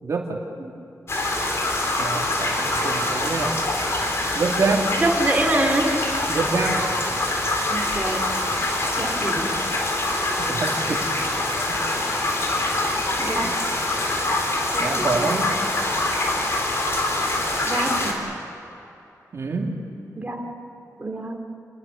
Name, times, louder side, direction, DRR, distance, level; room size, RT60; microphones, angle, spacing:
voice 1, 0.0-0.4 2.0-3.7 4.3-4.9 6.3-6.8 10.4-11.0 11.7-11.8 13.4-13.7 14.8-15.6 19.3-19.8, right 4 dB, 55° right, 0 dB, 2.5 m, -26 dB
sound 1, 1.1-18.1, left 2 dB, 45° left, 3.9 m, -24 dB
voice 2, 5.0-5.9 7.7-8.2 9.0-9.6 13.2-13.5 14.7-15.4 17.6-18.2 20.2-20.5 21.0-21.4, right 2 dB, 25° right, 1 dB, 2.5 m, -25 dB
29.0 x 20.5 x 7.0 m, 2.8 s
wide cardioid pair, 120°, 6 cm